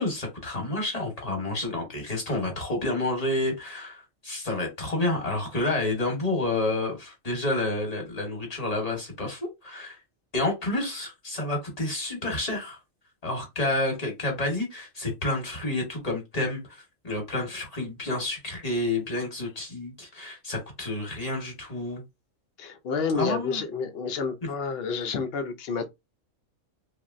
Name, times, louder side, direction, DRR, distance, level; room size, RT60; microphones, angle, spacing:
voice 1, 0.0-10.0 10.3-12.8 13.2-22.0 23.2-23.6, left 2 dB, 30° left, 1.2 m, -29 dB
voice 2, 22.6-25.9, left 5 dB, 60° left, 0.7 m, -29 dB
3.0 x 2.5 x 2.5 m
omnidirectional pair, 1.3 m